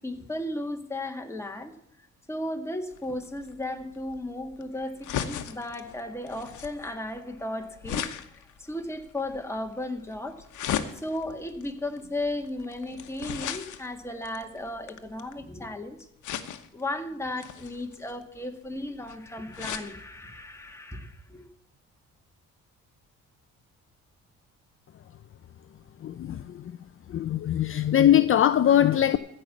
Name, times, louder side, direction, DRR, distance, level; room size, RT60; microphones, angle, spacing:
voice 1, 0.0-1.7 2.3-10.5 10.9-16.1 16.7-21.5, left 1 dB, 10° left, 3 dB, 1.8 m, -35 dB
sound 1, 2.9-15.5 16.2-16.9 17.4-19.9 20.4-20.5 20.7-20.8, left 10 dB, 75° left, 1.1 m, -37 dB
voice 2, 26.0-26.7 27.1-29.2, left 11 dB, 45° left, 11 dB, 0.6 m, -21 dB
14.5 x 5.5 x 8.5 m, 0.76 s
cardioid pair, 90°, 30 cm